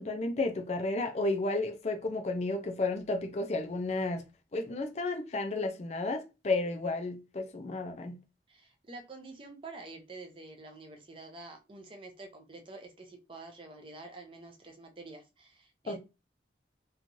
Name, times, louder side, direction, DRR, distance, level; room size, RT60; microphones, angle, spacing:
voice 1, 0.0-4.2 4.5-8.1 15.9-16.0, left 2 dB, 40° left, 0.4 m, -32 dB
voice 2, 8.5-16.0, right 3 dB, 30° right, 0.5 m, -48 dB
3.0 x 2.3 x 2.6 m
head